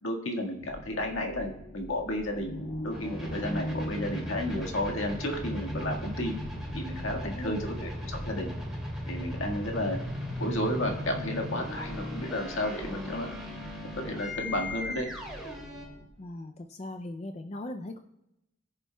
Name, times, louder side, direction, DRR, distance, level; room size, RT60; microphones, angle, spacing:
voice 1, 0.0-6.3 6.7-8.5 9.1-10.0 10.4-13.3 14.0-15.1, left 1 dB, 70° left, 1 dB, 1.8 m, -32 dB
sound 1, 0.6-16.1, equal, 45° left, 1.9 m, -41 dB
sound 2, 2.9-15.9, left 1 dB, 5° right, 2.6 m, -38 dB
voice 2, 7.2-7.6 16.2-18.0, left 1 dB, 30° left, 6 dB, 0.4 m, -39 dB
21.5 x 7.2 x 2.3 m, 0.87 s
head